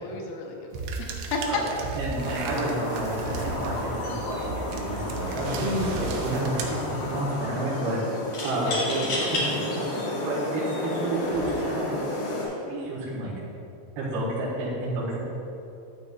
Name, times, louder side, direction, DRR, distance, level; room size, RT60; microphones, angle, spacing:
voice 1, 0.0-1.6 8.7-8.8 9.0-9.5, left 3 dB, 85° left, 0 dB, 3.8 m, -33 dB
sound 1, 0.7-7.4, right 4 dB, 85° right, 2.7 m, -36 dB
voice 2, 1.5-4.4 4.7-8.0 8.4-9.6 9.9-11.9 12.5-13.3 14.0-15.2, right 1 dB, 65° right, -7 dB, 2.9 m, -30 dB
sound 2, 2.2-12.5, left 1 dB, 65° left, 4.0 m, -32 dB
sound 3, 8.3-9.5 10.2-10.3 11.2-11.5, left 2 dB, 50° left, 2.1 m, -31 dB
12.0 x 9.1 x 2.4 m, 2.7 s
omnidirectional pair, 5.9 m